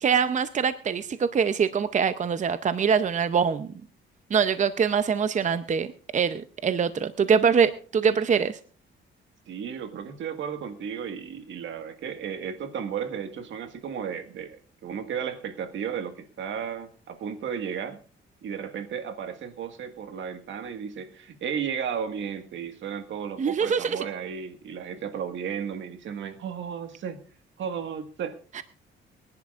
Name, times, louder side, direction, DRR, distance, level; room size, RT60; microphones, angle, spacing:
voice 1, 0.0-3.7 4.3-5.9 6.1-8.6 23.4-24.0 28.5-28.6, right 6 dB, 40° right, 12 dB, 0.7 m, -24 dB
voice 2, 9.5-18.0 18.4-27.2 27.6-28.4, right 7 dB, 70° right, 8 dB, 1.8 m, -34 dB
24.0 x 10.5 x 2.5 m, 0.42 s
cardioid pair, 90°, 20 cm